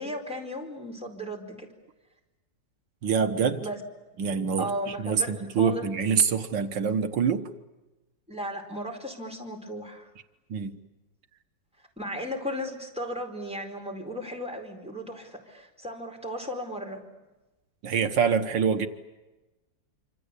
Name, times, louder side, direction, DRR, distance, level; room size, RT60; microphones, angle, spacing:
voice 1, 0.0-1.7 3.6-3.8 4.6-5.9 8.3-10.1 12.0-17.0, equal, 5° right, 4.6 m, -35 dB
voice 2, 3.0-3.7 4.2-4.7 5.0-7.5 10.5-10.8 17.8-18.9, right 6 dB, 85° right, 2.1 m, -25 dB
27.0 x 26.0 x 8.4 m
omnidirectional pair, 1.9 m